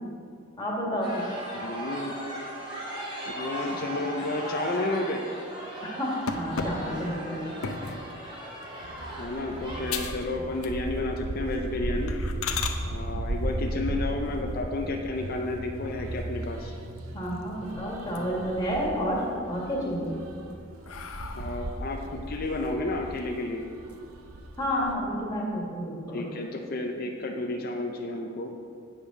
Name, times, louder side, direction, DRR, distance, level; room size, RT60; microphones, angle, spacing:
voice 1, 0.6-1.2 5.8-6.1 6.4-7.5 17.1-19.2 19.5-20.1 24.6-26.2, equal, 20° left, -4 dB, 1.9 m, -30 dB
sound 1, 1.0-10.0, right 1 dB, 25° right, 2.0 m, -38 dB
voice 2, 1.5-2.1 3.3-5.2 9.2-12.1 12.9-16.7 21.3-23.7 26.1-28.5, left 2 dB, 45° left, 3 dB, 0.5 m, -31 dB
sound 2, 6.3-8.1 8.6-8.9 9.4-9.5 9.9-10.2 10.5-11.1 11.4-11.6 12.1-12.8 14.8-15.5 15.9-16.0 16.4-16.5 16.8-17.6 18.0-18.6 19.0-19.6 20.1-21.8, left 5 dB, 85° left, 0.7 m, -36 dB
sound 3, 8.8-24.9, right 1 dB, 85° right, 0.7 m, -36 dB
8.8 x 5.1 x 6.3 m, 2.4 s
head